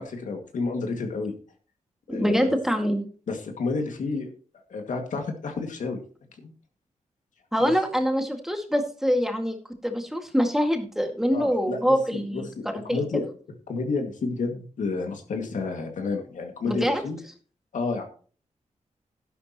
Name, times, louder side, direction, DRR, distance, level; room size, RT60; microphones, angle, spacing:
voice 1, 0.0-1.3 2.1-2.6 3.3-4.3 4.7-6.0 6.4-6.5 7.6-7.7 11.3-13.3 13.7-17.2 17.7-18.0, left 4 dB, 85° left, 4 dB, 2.1 m, -30 dB
voice 2, 2.1-3.0 7.5-9.6 9.8-12.5 12.9-13.2 16.7-17.0, equal, 5° right, 4 dB, 2.0 m, -24 dB
11.5 x 11.5 x 3.0 m, 0.41 s
wide cardioid pair, 90°, 13 cm